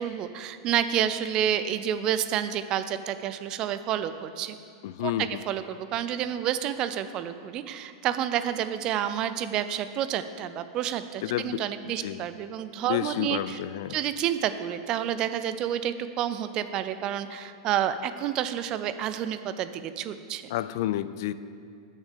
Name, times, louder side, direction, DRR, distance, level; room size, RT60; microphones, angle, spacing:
voice 1, 0.0-4.6 5.0-13.6 13.9-20.4, right 10 dB, 35° right, 12 dB, 0.4 m, -29 dB
voice 2, 4.8-5.4 11.2-12.2 12.9-14.0 20.5-21.3, left 13 dB, 65° left, 14 dB, 0.3 m, -30 dB
6.4 x 6.4 x 6.7 m, 2.3 s
supercardioid pair, 150°, 2 cm